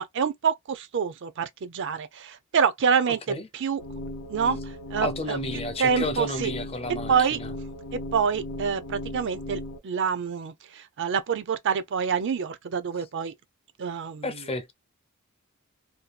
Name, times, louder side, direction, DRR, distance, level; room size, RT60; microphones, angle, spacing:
voice 1, 0.0-3.8 4.3-5.4 5.8-6.5 7.1-7.4 7.9-13.3 13.8-14.2, right 6 dB, 55° right, 0.4 m, -27 dB
sound 1, 3.8-9.8, left 1 dB, 70° left, 0.6 m, -37 dB
voice 2, 5.0-7.5 14.2-14.7, left 2 dB, 25° left, 0.5 m, -32 dB
2.7 x 2.2 x 2.3 m
head